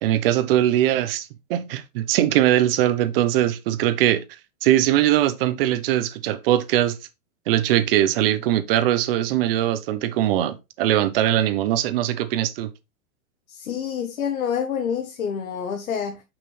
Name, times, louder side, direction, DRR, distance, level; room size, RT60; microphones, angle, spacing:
voice 1, 0.0-4.2 4.6-7.0 7.5-12.7, right 12 dB, 45° right, 0.9 m, -21 dB
voice 2, 13.5-16.2, left 7 dB, 90° left, 1.3 m, -27 dB
6.5 x 5.8 x 3.2 m
hypercardioid pair, 150°, 41 cm